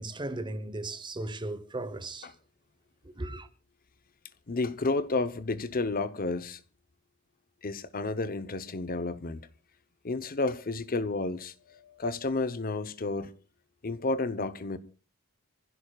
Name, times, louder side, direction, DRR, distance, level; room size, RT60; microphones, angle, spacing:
voice 1, 0.0-2.3 3.0-3.5, right 2 dB, 20° right, 1.0 m, -36 dB
voice 2, 4.5-6.6 7.6-9.4 10.0-13.3 13.8-14.8, left 3 dB, 40° left, 0.8 m, -31 dB
27.0 x 15.5 x 2.4 m
head